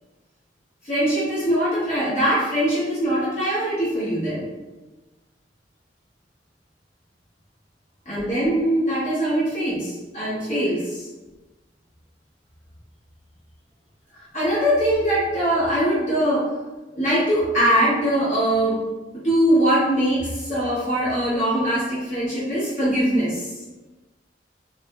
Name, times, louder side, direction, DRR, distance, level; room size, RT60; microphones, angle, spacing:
voice 1, 0.8-4.4 8.1-11.1 14.1-16.5 16.9-18.8 19.2-23.5, right 1 dB, 40° left, -10 dB, 0.8 m, -22 dB
2.8 x 2.3 x 2.2 m, 1.2 s
head